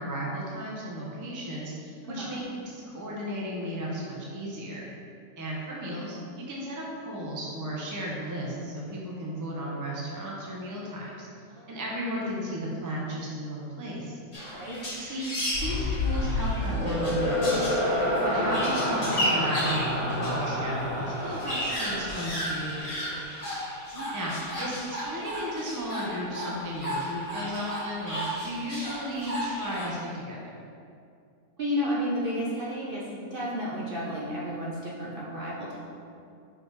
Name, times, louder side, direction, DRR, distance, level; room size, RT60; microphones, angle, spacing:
voice 1, 0.0-4.9 5.4-11.3 11.7-14.2 15.0-15.3 15.6-17.9 18.2-22.9 24.1-30.6, equal, 15° right, -4 dB, 0.7 m, -34 dB
voice 2, 2.0-2.4 14.5-14.8 18.2-18.5 23.9-24.1 31.6-35.8, equal, 40° right, -6 dB, 1.0 m, -32 dB
sound 1, 14.3-20.5 20.8-20.9 21.1-29.9, equal, 25° left, 1.6 m, -34 dB
sound 2, 15.5-22.9, left 1 dB, 40° left, 2.0 m, -28 dB
5.2 x 4.9 x 4.8 m, 2.4 s
omnidirectional pair, 1.7 m